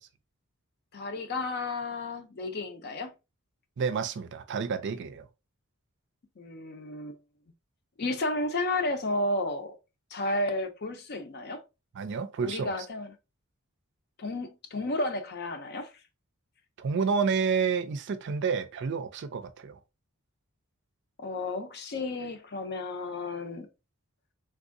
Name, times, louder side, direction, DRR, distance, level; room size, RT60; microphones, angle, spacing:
voice 1, 0.9-3.1 6.4-7.2 8.0-9.8 10.1-11.6 12.4-13.2 14.2-15.9 21.2-23.7, left 2 dB, 50° left, 0.6 m, -32 dB
voice 2, 3.8-5.3 12.0-12.7 16.8-19.8, right 5 dB, 55° right, 0.4 m, -29 dB
3.5 x 2.6 x 2.5 m
head